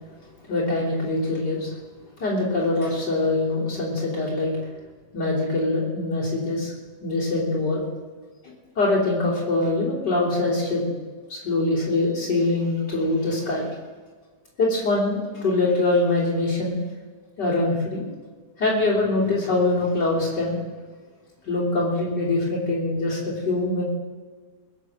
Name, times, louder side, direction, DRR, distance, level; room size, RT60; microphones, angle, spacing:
voice 1, 0.5-1.7 2.2-4.5 5.1-6.7 7.0-7.8 8.4-10.8 11.3-13.7 14.6-16.8 17.4-18.1 18.6-20.6 21.4-23.8, left 2 dB, 90° left, -6 dB, 4.2 m, -23 dB
22.0 x 7.6 x 7.7 m, 1.5 s
omnidirectional pair, 1.8 m